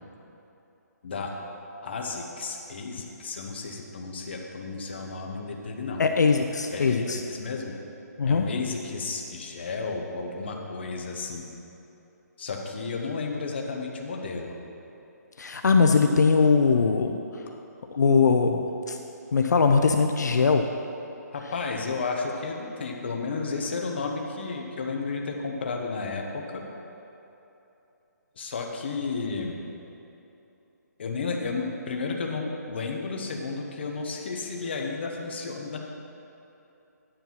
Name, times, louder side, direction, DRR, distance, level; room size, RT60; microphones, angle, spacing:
voice 1, 1.0-1.3 1.8-6.0 6.7-7.7 8.3-11.5 12.4-14.6 21.3-26.7 28.4-29.6 31.0-35.8, left 4 dB, 35° left, 1 dB, 0.9 m, -32 dB
voice 2, 6.0-7.2 8.2-8.5 15.4-17.4 17.9-19.0 19.3-20.7, left 4 dB, 75° left, 5 dB, 0.6 m, -21 dB
10.0 x 5.4 x 5.9 m, 2.9 s
hypercardioid pair, 175°, 10 cm